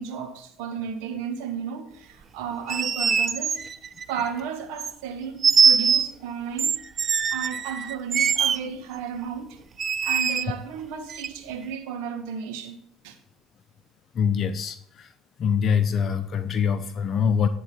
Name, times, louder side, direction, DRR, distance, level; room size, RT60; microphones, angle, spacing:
voice 1, 0.0-3.6 4.1-6.8 7.3-9.6 10.0-12.8 13.0-13.2, right 7 dB, 80° right, 1.2 m, -33 dB
sound 1, 2.5-4.3 4.8-4.9 5.4-6.1 6.6-8.6 9.8-10.5 11.1-11.3, right 6 dB, 40° right, 0.5 m, -22 dB
voice 2, 14.1-15.1 15.4-17.5, left 7 dB, 50° left, 0.6 m, -24 dB
11.0 x 3.8 x 7.3 m
supercardioid pair, 75°, 0 cm